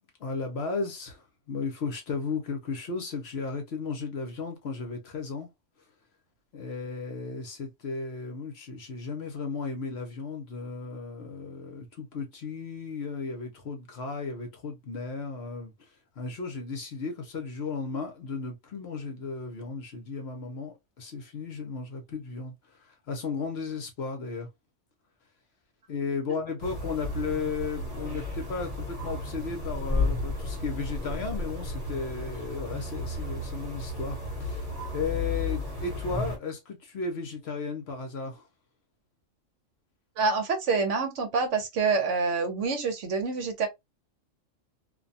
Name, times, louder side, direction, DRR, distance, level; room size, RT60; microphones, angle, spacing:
voice 1, 0.2-5.5 6.5-15.9 16.2-24.5 25.9-34.6 34.9-38.4, left 4 dB, 60° left, 0.9 m, -35 dB
sound 1, 26.6-36.4, left 2 dB, 30° right, 1.0 m, -33 dB
voice 2, 40.2-43.7, right 4 dB, 65° right, 1.0 m, -27 dB
2.5 x 2.2 x 2.6 m
omnidirectional pair, 1.4 m